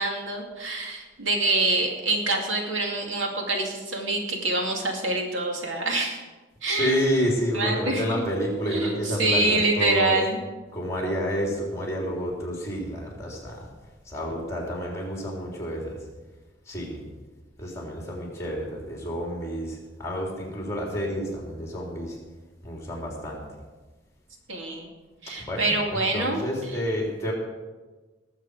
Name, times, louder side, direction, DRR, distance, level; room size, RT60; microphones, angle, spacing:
voice 1, 0.0-6.2 6.6-7.0 7.5-8.2 8.7-10.4 24.5-24.9 25.2-26.4, right 2 dB, 85° right, 1 dB, 2.3 m, -26 dB
voice 2, 6.7-10.2 10.7-13.7 14.0-16.0 16.7-17.0 17.6-22.2 22.6-23.4 25.4-27.3, equal, 15° left, -1 dB, 3.3 m, -29 dB
19.5 x 7.9 x 4.8 m, 1.3 s
head